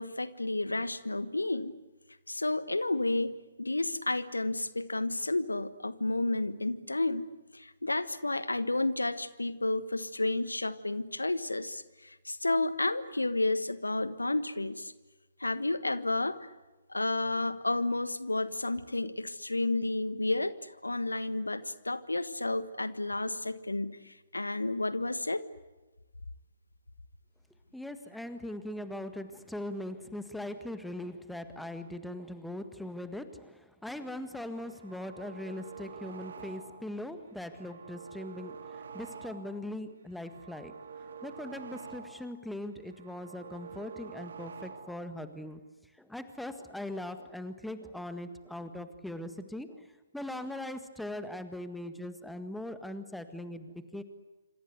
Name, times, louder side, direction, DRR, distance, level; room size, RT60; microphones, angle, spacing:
voice 1, 0.0-1.7 2.3-7.3 7.5-14.9 15.4-16.4 16.9-25.4, left 2 dB, 80° left, 14 dB, 1.3 m, -31 dB
voice 2, 27.7-40.7 41.2-54.0, left 1 dB, ahead, 9 dB, 1.7 m, -40 dB
sound 1, 34.6-37.0 37.3-39.7 40.0-42.4 42.7-45.1, right 5 dB, 55° right, 2.8 m, -47 dB
27.0 x 26.5 x 8.2 m, 1.1 s
figure-of-eight pair, 130°, 0 cm